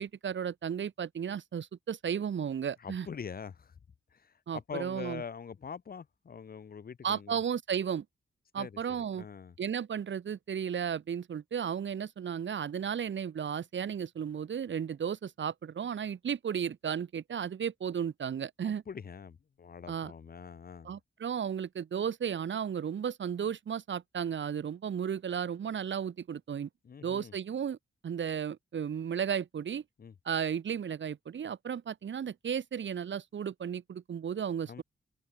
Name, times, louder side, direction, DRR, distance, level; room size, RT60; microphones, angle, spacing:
voice 1, 0.0-3.1 4.5-5.2 7.0-8.0 8.5-9.3 9.6-18.8 19.9-20.1 20.8-26.7 27.0-27.8 28.0-29.8 30.2-34.8, right 8 dB, 65° right, 1.6 m, -34 dB
voice 2, 2.8-3.7 4.1-7.4 8.6-9.6 18.9-20.9 26.8-27.3 30.0-30.1 34.7-34.8, left 6 dB, 45° left, 1.2 m, -44 dB
wide cardioid pair, 165°, 21 cm